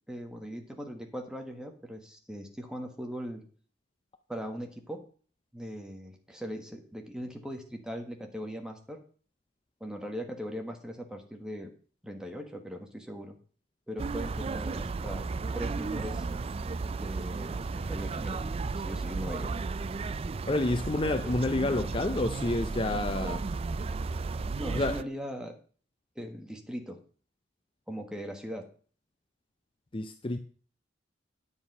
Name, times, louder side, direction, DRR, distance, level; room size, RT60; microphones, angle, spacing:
voice 1, 0.1-3.4 4.3-5.0 5.5-9.0 9.8-11.7 12.0-13.4 13.9-15.3 15.5-16.2 17.0-19.6 21.2-21.3 24.5-25.5 26.1-27.0 27.9-28.6, equal, 5° right, 1.5 m, -40 dB
sound 1, 14.0-25.0, right 4 dB, 30° right, 0.3 m, -34 dB
voice 2, 20.5-23.5 24.7-25.0 29.9-30.4, left 2 dB, 30° left, 0.5 m, -29 dB
10.0 x 7.2 x 5.4 m
head